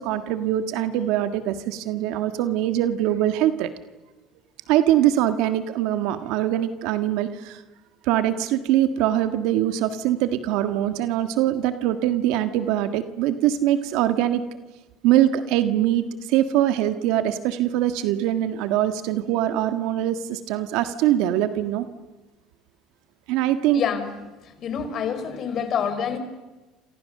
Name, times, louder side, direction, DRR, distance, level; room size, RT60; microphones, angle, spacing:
voice 1, 0.0-3.7 4.7-7.6 8.0-14.4 15.0-21.9 23.3-23.8, right 12 dB, 75° right, 9 dB, 1.6 m, -23 dB
voice 2, 23.7-24.1 24.4-26.2, left 7 dB, 50° left, 10 dB, 4.5 m, -27 dB
29.5 x 27.5 x 6.7 m, 1.2 s
supercardioid pair, 110°, 0 cm